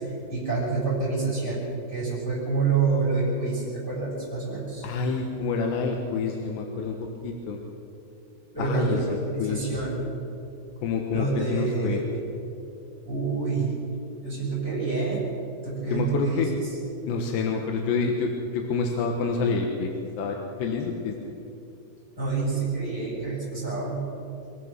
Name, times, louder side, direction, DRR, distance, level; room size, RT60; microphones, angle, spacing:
voice 1, 0.0-1.6 1.9-4.9 8.5-10.0 11.1-12.2 13.0-13.7 14.2-15.3 15.6-16.7 22.2-24.0, right 4 dB, 5° left, -6 dB, 6.9 m, -27 dB
voice 2, 4.8-7.0 7.2-7.6 8.6-9.0 9.4-9.6 10.8-12.0 15.9-16.5 17.1-21.2, left 4 dB, 80° left, 2 dB, 3.6 m, -27 dB
25.5 x 15.0 x 7.4 m, 2.8 s
omnidirectional pair, 4.9 m